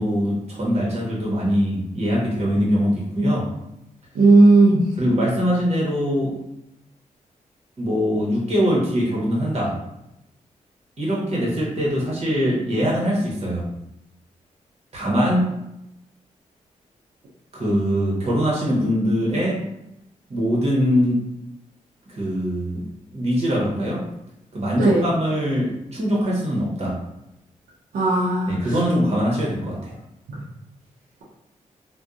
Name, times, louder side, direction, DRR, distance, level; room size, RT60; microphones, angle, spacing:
voice 1, 0.0-3.4 5.0-6.3 7.8-9.7 11.0-13.6 14.9-15.5 17.5-19.6 20.3-21.2 22.1-22.8 23.1-24.0 24.5-26.9 28.5-30.0, equal, 50° right, -5 dB, 1.0 m, -22 dB
voice 2, 4.1-4.9 24.8-25.1 27.9-28.7 30.3-30.4, right 2 dB, 80° right, -7 dB, 0.6 m, -16 dB
2.6 x 2.2 x 2.4 m, 0.85 s
cardioid pair, 75°, 14 cm